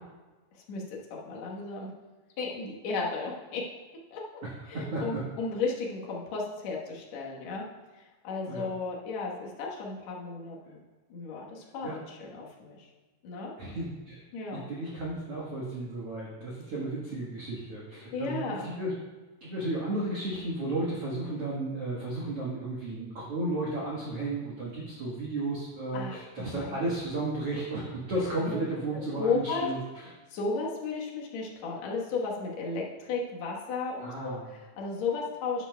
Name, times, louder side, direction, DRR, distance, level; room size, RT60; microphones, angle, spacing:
voice 1, 0.5-1.9 2.4-3.6 4.1-4.2 4.7-7.6 7.9-10.8 11.1-12.9 13.2-13.5 14.3-14.7 18.1-18.7 25.9-26.8 28.5-28.6 29.2-29.7 30.3-35.7, left 4 dB, 70° left, -2 dB, 1.7 m, -34 dB
voice 2, 4.4-5.2 8.5-8.7 11.8-12.0 13.6-14.2 14.5-18.9 19.4-30.1 34.0-34.5, right 2 dB, 85° right, -5 dB, 1.3 m, -33 dB
11.5 x 9.9 x 2.2 m, 1.3 s
omnidirectional pair, 5.0 m